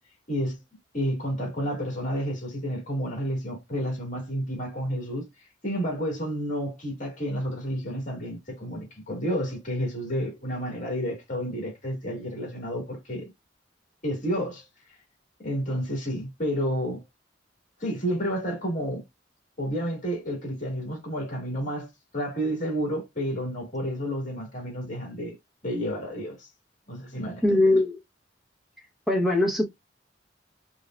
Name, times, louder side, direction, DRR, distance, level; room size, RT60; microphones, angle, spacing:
voice 1, 0.3-0.6 0.9-5.3 5.6-13.3 14.0-14.6 15.4-17.0 17.8-19.0 19.6-25.4 25.6-26.5 26.9-27.6, equal, 40° left, 2.1 m, -30 dB
voice 2, 27.4-28.0 29.1-29.7, left 2 dB, ahead, 0.9 m, -21 dB
5.4 x 2.4 x 2.3 m
head